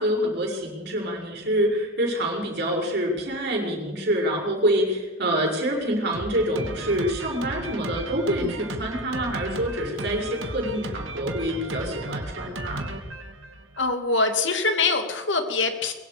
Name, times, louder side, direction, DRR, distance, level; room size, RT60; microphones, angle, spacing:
voice 1, 0.0-12.9, equal, 55° right, 0 dB, 6.4 m, -26 dB
Drum kit, 6.1-13.9, right 2 dB, 80° right, 2.2 m, -35 dB
voice 2, 13.8-15.9, left 3 dB, 65° left, 6 dB, 2.6 m, -23 dB
23.5 x 23.0 x 5.3 m, 1.2 s
head